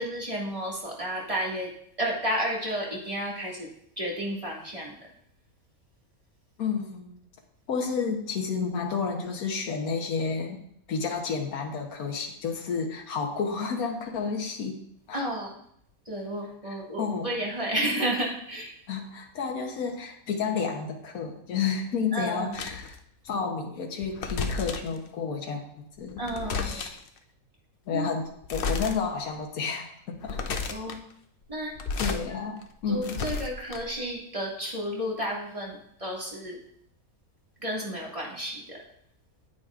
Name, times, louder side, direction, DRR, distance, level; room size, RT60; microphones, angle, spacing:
voice 1, 0.0-1.7 2.0-3.7 4.0-5.0 15.1-15.5 16.1-18.7 22.1-22.6 26.2-26.8 27.9-28.2 30.7-31.0 31.5-31.7 32.0-32.1 32.9-36.6 37.6-38.8, equal, 25° right, -3 dB, 1.9 m, -32 dB
voice 2, 6.6-7.2 7.7-10.6 10.9-14.8 15.1-15.2 16.6-17.3 18.9-22.9 23.2-26.2 26.6-27.0 27.9-30.6 32.0-33.2, left 5 dB, 80° left, 2 dB, 1.5 m, -31 dB
sound 1, 22.5-23.0 24.0-25.0 26.0-27.1 28.4-29.0 29.4-29.5 30.1-31.0 31.6-32.2 32.6-34.0, left 4 dB, 55° left, 0.6 m, -32 dB
9.1 x 8.6 x 2.4 m, 0.69 s
omnidirectional pair, 1.5 m